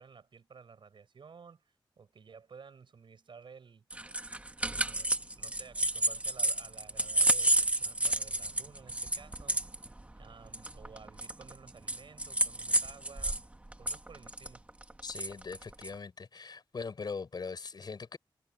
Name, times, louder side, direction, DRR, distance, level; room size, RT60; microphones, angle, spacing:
voice 1, 0.0-3.9 4.6-9.9 10.2-13.4 13.8-14.7, right 5 dB, 70° right, 5.7 m, -54 dB
sound 1, 3.9-13.4 13.7-15.9, right 1 dB, 15° right, 1.3 m, -30 dB
voice 2, 15.0-18.2, left 5 dB, 55° left, 4.0 m, -41 dB
wide cardioid pair, 140°, 9 cm